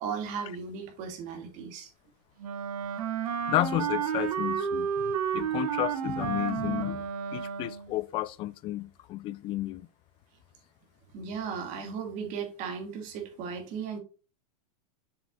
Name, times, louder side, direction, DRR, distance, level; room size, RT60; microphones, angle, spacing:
voice 1, 0.0-1.9 11.1-14.0, right 6 dB, 40° right, 2.3 m, -36 dB
Wind instrument woodwind instrument, 2.4-7.9, right 7 dB, 65° right, 1.3 m, -31 dB
voice 2, 3.5-4.9 5.3-9.9, left 15 dB, 25° left, 0.4 m, -32 dB
7.3 x 6.0 x 2.4 m
supercardioid pair, 145°, 20 cm